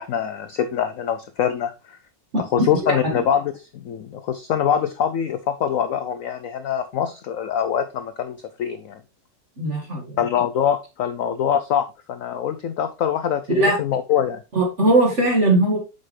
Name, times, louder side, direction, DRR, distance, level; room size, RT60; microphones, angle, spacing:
voice 1, 0.0-2.0 2.4-9.0 10.2-14.4, left 9 dB, 80° left, 10 dB, 0.7 m, -24 dB
voice 2, 9.6-10.2 13.5-13.8 14.5-15.8, right 2 dB, 40° right, -1 dB, 2.2 m, -19 dB
7.9 x 5.7 x 3.2 m, 0.28 s
omnidirectional pair, 2.0 m